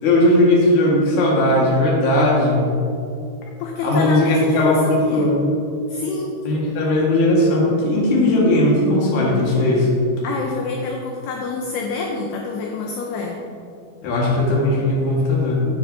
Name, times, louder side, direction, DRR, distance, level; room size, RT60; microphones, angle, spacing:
voice 1, 0.0-2.6 3.8-5.5 6.4-10.0 14.0-15.7, left 1 dB, 55° left, -4 dB, 2.3 m, -17 dB
voice 2, 3.6-5.3 5.9-6.4 10.2-13.4, left 3 dB, 80° left, 1 dB, 2.3 m, -27 dB
9.7 x 8.5 x 2.7 m, 2.6 s
omnidirectional pair, 5.2 m